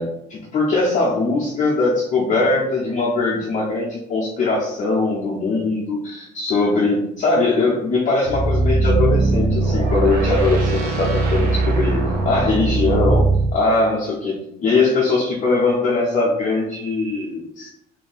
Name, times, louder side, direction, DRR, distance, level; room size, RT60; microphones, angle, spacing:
voice 1, 0.0-12.0 12.2-13.2 13.5-17.7, left 3 dB, 50° left, -6 dB, 0.8 m, -21 dB
sound 1, 8.2-13.5, right 3 dB, 65° right, 0.9 m, -19 dB
2.6 x 2.2 x 4.1 m, 0.76 s
cardioid pair, 110°, 17 cm